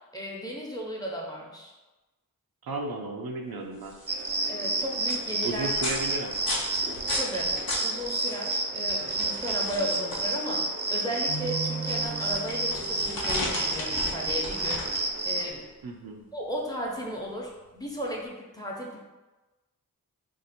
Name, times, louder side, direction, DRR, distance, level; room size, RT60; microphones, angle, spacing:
voice 1, 0.1-1.7 4.5-5.7 7.1-7.5 7.8-14.8 15.2-15.7 16.3-19.0, equal, 10° left, -3 dB, 0.9 m, -35 dB
voice 2, 2.6-3.9 5.4-6.5 15.8-16.2, right 3 dB, 85° right, 2 dB, 0.5 m, -34 dB
sound 1, 3.6-18.2, left 2 dB, 80° left, 0.8 m, -38 dB
sound 2, 4.1-15.5, right 2 dB, 30° right, 0.5 m, -30 dB
Keyboard (musical), 11.3-13.1, right 4 dB, 45° left, 0.6 m, -37 dB
2.7 x 2.5 x 4.2 m, 1.1 s
cardioid pair, 45°, 35 cm